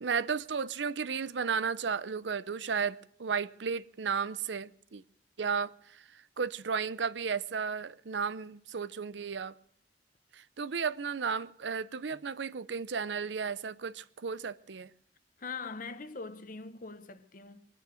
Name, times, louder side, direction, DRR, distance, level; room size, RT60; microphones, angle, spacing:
voice 1, 0.0-5.0 5.4-9.5 10.3-14.9, right 6 dB, 85° right, 0.6 m, -34 dB
voice 2, 15.4-17.7, left 4 dB, 50° left, 1.0 m, -42 dB
22.5 x 9.4 x 6.3 m
head